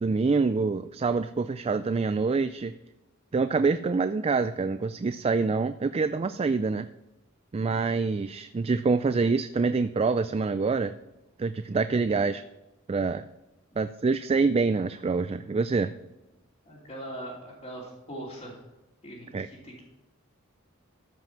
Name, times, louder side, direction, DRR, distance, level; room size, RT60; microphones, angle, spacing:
voice 1, 0.0-2.7 3.3-6.9 7.5-10.9 11.4-12.4 12.9-13.2 13.8-15.9 19.3-19.5, right 4 dB, 30° right, 11 dB, 0.3 m, -26 dB
voice 2, 16.6-18.6 19.0-19.8, right 1 dB, 30° left, -8 dB, 3.0 m, -41 dB
13.5 x 5.9 x 5.7 m, 0.99 s
head